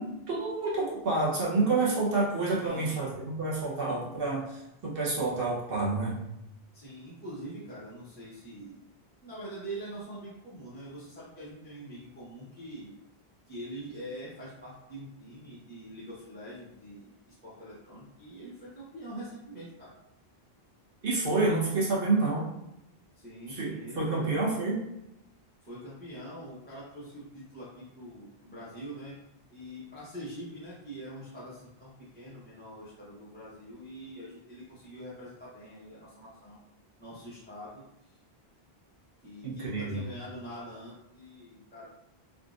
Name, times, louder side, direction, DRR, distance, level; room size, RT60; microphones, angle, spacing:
voice 1, 0.0-6.2 21.0-22.5 23.5-24.8 39.4-40.0, right 3 dB, 65° right, -6 dB, 1.1 m, -28 dB
voice 2, 2.6-3.1 6.7-8.8 9.2-12.9 13.5-19.9 23.1-24.3 25.6-29.2 29.5-36.6 37.0-38.1 39.2-41.9, right 1 dB, 10° left, -10 dB, 0.7 m, -44 dB
3.7 x 2.4 x 2.4 m, 0.83 s
omnidirectional pair, 1.1 m